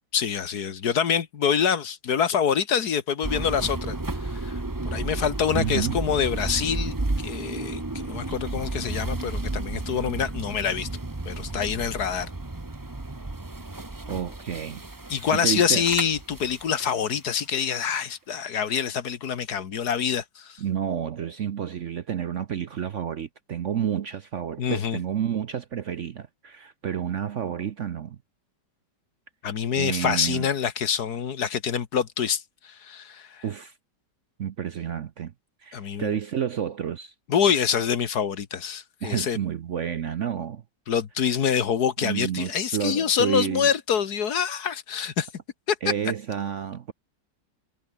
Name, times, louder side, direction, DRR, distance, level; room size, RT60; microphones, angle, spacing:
voice 1, 0.1-4.6 4.9-10.9 11.3-12.3 15.1-20.6 24.6-25.0 29.4-33.4 35.7-36.2 37.3-39.4 40.9-45.3 45.7-45.8, left 7 dB, 60° left, 1.8 m, -26 dB
sound 1, 3.2-17.2, right 2 dB, 15° right, 1.0 m, -32 dB
voice 2, 5.5-6.0 14.1-14.8 15.1-15.8 20.6-28.2 29.8-30.5 33.4-33.7 34.4-35.3 35.6-37.1 39.0-40.6 42.0-43.7 45.8-46.9, right 9 dB, 55° right, 0.9 m, -30 dB
omnidirectional pair, 1.9 m